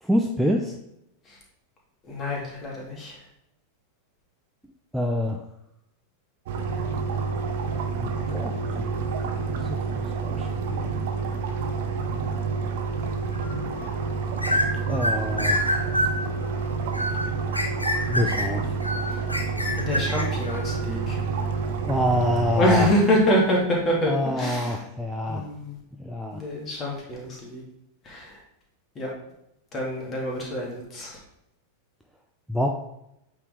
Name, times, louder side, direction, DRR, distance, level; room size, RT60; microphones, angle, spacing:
voice 1, 0.0-0.8 4.9-5.4 8.0-9.0 9.5-11.1 14.9-15.7 18.1-18.8 21.8-22.9 24.1-25.5 26.0-26.4 32.5-32.7, equal, ahead, 1 dB, 0.5 m, -27 dB
voice 2, 2.0-3.2 19.1-19.2 19.8-21.2 22.6-24.8 25.3-25.8 26.3-27.6 28.0-28.4 29.0-29.1 29.7-31.2, equal, 25° left, -3 dB, 2.2 m, -26 dB
sound 1, 6.5-22.9, right 5 dB, 50° right, 0.9 m, -28 dB
sound 2, 13.3-13.9 14.4-20.8, left 1 dB, 85° left, 0.8 m, -27 dB
8.3 x 3.8 x 3.6 m, 0.83 s
figure-of-eight pair, 90°, 0 cm